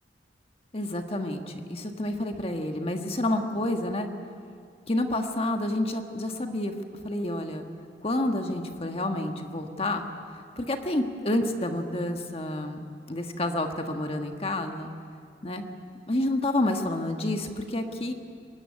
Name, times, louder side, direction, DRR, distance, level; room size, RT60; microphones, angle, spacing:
voice 1, 0.7-4.1 4.9-6.7 7.0-7.6 8.0-10.0 10.6-12.8 13.1-14.9 15.4-15.6 16.1-18.1, left 1 dB, 35° left, 5 dB, 1.5 m, -29 dB
24.0 x 18.5 x 9.7 m, 2.3 s
head